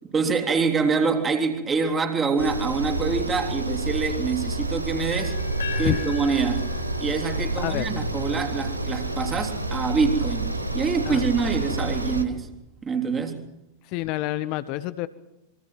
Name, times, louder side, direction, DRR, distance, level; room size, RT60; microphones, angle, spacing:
voice 1, 0.0-5.4 5.8-6.7 7.0-12.5 12.8-13.5, right 5 dB, 20° right, 3.4 m, -25 dB
sound 1, 2.4-12.2, right 2 dB, 85° right, 1.8 m, -29 dB
sound 2, 5.1-9.0, left 7 dB, 70° left, 4.1 m, -39 dB
voice 2, 5.7-6.1 7.6-7.9 11.1-11.4 13.9-15.1, left 17 dB, 45° left, 0.9 m, -28 dB
26.5 x 23.5 x 6.2 m
figure-of-eight pair, 90°, 0 cm